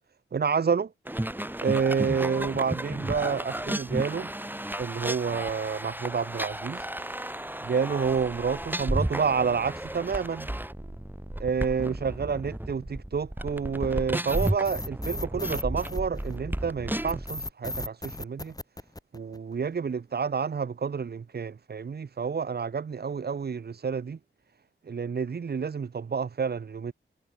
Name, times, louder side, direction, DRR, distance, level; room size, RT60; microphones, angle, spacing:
voice 1, 0.3-0.9 1.6-4.3 4.8-6.9 7.6-10.5 11.4-18.5 19.1-24.2 24.9-26.9, right 6 dB, 55° right, 0.8 m, -29 dB
sound 1, 1.0-17.3, right 1 dB, 10° right, 4.2 m, -33 dB
sound 2, 14.3-16.6 17.1-19.5, left 1 dB, 20° left, 5.3 m, -36 dB
wide cardioid pair, 100°, 20 cm